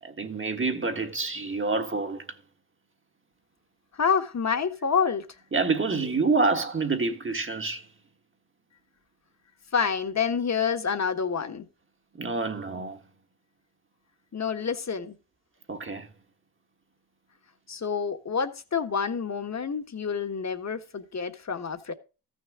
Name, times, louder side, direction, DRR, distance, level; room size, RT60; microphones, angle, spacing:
voice 1, 0.0-2.4 5.5-7.9 12.1-13.0 15.7-16.1, right 3 dB, 25° right, 1.5 m, -27 dB
voice 2, 3.9-5.3 9.7-11.7 14.3-15.1 17.7-21.9, left 6 dB, 35° left, 1.5 m, -28 dB
14.0 x 6.5 x 3.7 m
cardioid pair, 70°, 49 cm